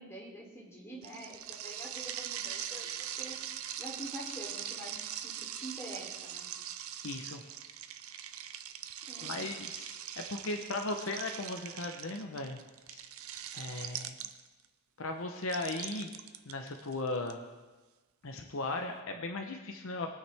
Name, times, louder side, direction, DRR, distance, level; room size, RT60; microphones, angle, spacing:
voice 1, 0.0-2.9 3.2-3.4 3.8-6.5 9.1-9.4, right 1 dB, 15° left, -4 dB, 3.2 m, -46 dB
sound 1, 1.0-14.6 15.4-17.3, right 10 dB, 65° right, 0.6 m, -42 dB
voice 2, 7.0-7.4 9.2-12.6 12.9-13.1 13.5-14.1 15.0-16.1 16.5-17.4 18.2-20.1, left 2 dB, 65° left, 4 dB, 0.9 m, -37 dB
21.5 x 9.4 x 3.5 m, 1.2 s
head